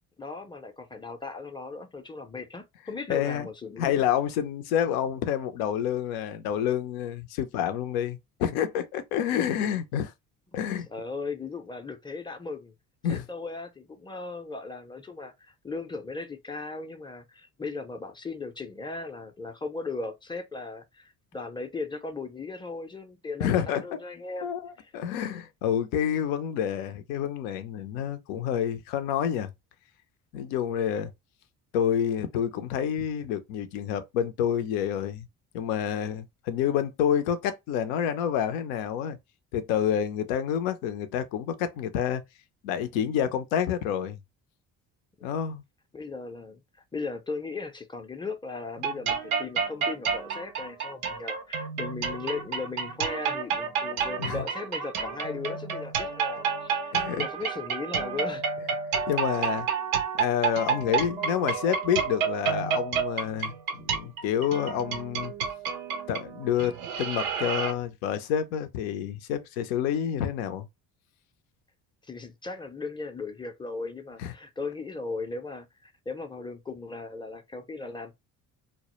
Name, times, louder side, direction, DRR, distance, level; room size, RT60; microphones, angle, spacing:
voice 1, 0.2-4.1 10.9-12.7 13.1-24.5 24.8-24.9 45.9-46.6 46.9-58.4 72.0-78.1, left 3 dB, 10° left, 0.5 m, -37 dB
voice 2, 3.1-3.5 3.8-10.1 10.5-10.9 13.0-13.3 23.4-23.8 24.4-29.5 30.3-31.1 31.7-35.3 35.5-39.2 39.5-42.2 42.6-44.2 45.2-45.6 54.2-54.4 56.9-57.3 59.1-59.7 60.2-65.3 66.1-70.7 74.2-74.3, left 9 dB, 80° left, 0.5 m, -28 dB
sound 1, 48.8-67.7, right 6 dB, 85° right, 0.5 m, -30 dB
2.1 x 2.0 x 2.9 m
hypercardioid pair, 55°, 42 cm